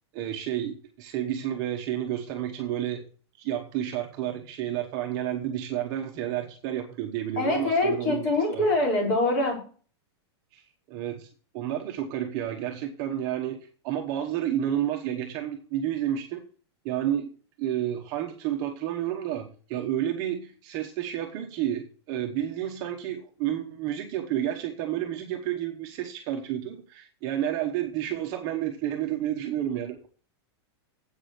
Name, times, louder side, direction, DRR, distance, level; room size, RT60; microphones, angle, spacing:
voice 1, 0.1-3.0 3.4-8.7 10.5-10.6 10.9-11.3 11.5-13.6 13.8-16.4 16.8-17.3 17.6-30.1, right 11 dB, 25° right, 2 dB, 1.0 m, -30 dB
voice 2, 7.4-9.6, left 2 dB, 35° left, 0 dB, 4.0 m, -24 dB
8.2 x 6.0 x 6.6 m, 0.40 s
supercardioid pair, 180°, 14 cm